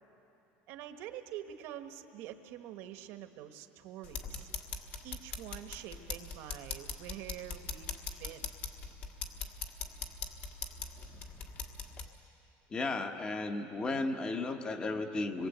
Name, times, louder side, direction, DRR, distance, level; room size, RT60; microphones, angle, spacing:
voice 1, 0.7-4.5 5.0-8.5, right 11 dB, 50° right, 8 dB, 1.2 m, -46 dB
sound 1, 4.0-12.1, left 5 dB, 35° left, 1.5 m, -42 dB
voice 2, 12.7-15.5, left 3 dB, 15° left, 7 dB, 1.1 m, -34 dB
25.5 x 22.5 x 8.1 m, 3.0 s
cardioid pair, 175°, 5 cm